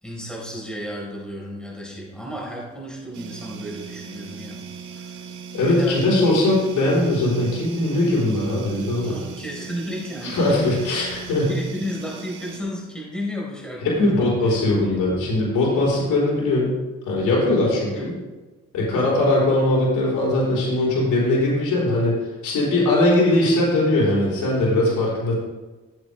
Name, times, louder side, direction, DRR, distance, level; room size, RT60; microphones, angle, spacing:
voice 1, 0.0-4.6 4.9-5.2 5.7-6.3 9.0-10.6 11.4-14.3 14.9-15.2 17.9-18.1, equal, 5° left, -3 dB, 4.0 m, -33 dB
sound 1, 3.1-12.6, right 6 dB, 75° right, 1.8 m, -38 dB
voice 2, 5.5-9.2 10.2-11.5 13.8-16.7 17.0-18.1 18.7-22.2 22.4-25.3, left 1 dB, 80° left, -5 dB, 3.6 m, -20 dB
15.0 x 7.8 x 3.3 m, 1.2 s
cardioid pair, 90°, 30 cm